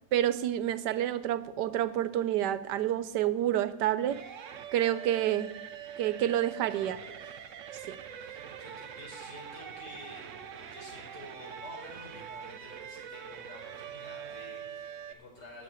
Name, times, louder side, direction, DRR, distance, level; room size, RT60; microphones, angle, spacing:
voice 1, 0.1-4.2 4.7-5.5 6.0-7.0 7.9-8.0, right 12 dB, 85° right, 14 dB, 1.3 m, -28 dB
sound 1, 4.1-15.1, right 8 dB, 60° right, 1.0 m, -44 dB
voice 2, 6.6-7.4 7.7-15.6, left 1 dB, 90° left, -3 dB, 5.3 m, -50 dB
8.3 x 8.2 x 9.0 m, 0.92 s
omnidirectional pair, 1.8 m